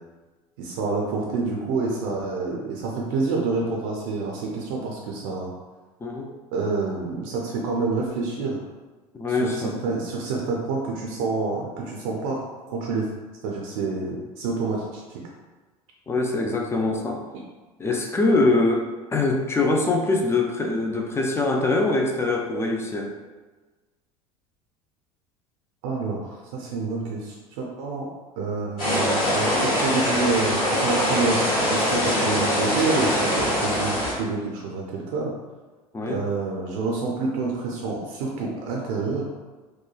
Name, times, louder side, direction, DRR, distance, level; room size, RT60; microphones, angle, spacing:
voice 1, 0.6-5.5 6.5-8.6 9.3-13.1 13.4-15.2 16.8-16.9 25.8-28.1 28.4-35.3 36.0-39.3, right 3 dB, 60° right, -2 dB, 0.5 m, -28 dB
voice 2, 6.0-6.3 9.1-9.8 16.1-17.2 17.8-18.8 19.1-23.1 35.9-36.2, left 2 dB, 15° left, 1 dB, 0.3 m, -23 dB
sound 1, 28.8-34.1, left 1 dB, 65° left, 1.1 m, -23 dB
2.9 x 2.2 x 2.2 m, 1.3 s
figure-of-eight pair, 70°, 19 cm